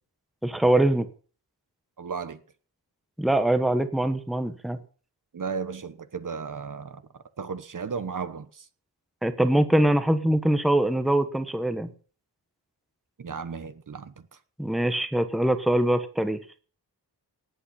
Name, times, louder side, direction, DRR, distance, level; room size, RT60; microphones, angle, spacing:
voice 1, 0.4-1.1 3.2-4.8 9.2-11.9 14.6-16.4, right 1 dB, ahead, 1.1 m, -23 dB
voice 2, 2.0-2.4 5.3-8.6 13.2-14.1, right 5 dB, 50° right, 1.1 m, -35 dB
18.5 x 8.9 x 5.8 m
wide cardioid pair, 160°, 42 cm